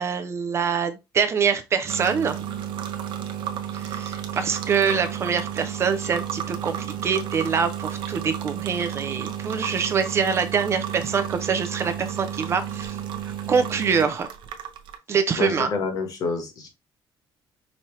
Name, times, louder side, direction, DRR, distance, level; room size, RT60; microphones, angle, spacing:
voice 1, 0.0-2.4 3.7-13.0 13.2-14.3 15.1-15.7, right 6 dB, 30° right, 0.5 m, -25 dB
sound 1, 1.9-15.0, right 10 dB, 70° right, 0.7 m, -32 dB
voice 2, 15.4-16.7, left 4 dB, 45° left, 1.2 m, -27 dB
5.1 x 2.8 x 3.1 m
cardioid pair, 170°, 9 cm